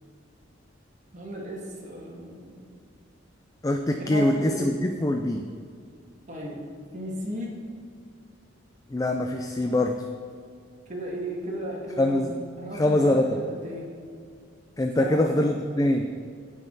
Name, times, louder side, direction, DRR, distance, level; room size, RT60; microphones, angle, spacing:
voice 1, 1.1-2.8 4.0-4.8 6.3-6.7 6.9-7.5 10.9-13.9 15.0-15.5, equal, 40° right, -3 dB, 2.1 m, -35 dB
voice 2, 3.6-5.5 8.9-10.0 12.0-12.3 12.7-13.3 14.8-16.1, left 1 dB, 15° left, 4 dB, 0.4 m, -23 dB
15.5 x 5.9 x 4.0 m, 2.3 s
head